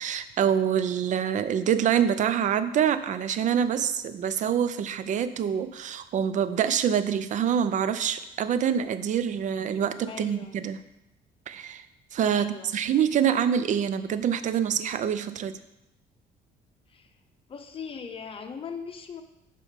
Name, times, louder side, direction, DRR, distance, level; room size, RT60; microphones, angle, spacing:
voice 1, 0.0-10.8 11.5-11.8 12.1-15.6, right 8 dB, 45° right, 12 dB, 0.5 m, -26 dB
voice 2, 10.1-10.5 12.3-12.7 16.9-17.1 17.5-19.2, left 6 dB, 35° left, 6 dB, 0.7 m, -39 dB
6.3 x 4.2 x 5.1 m, 0.90 s
cardioid pair, 110°, 17 cm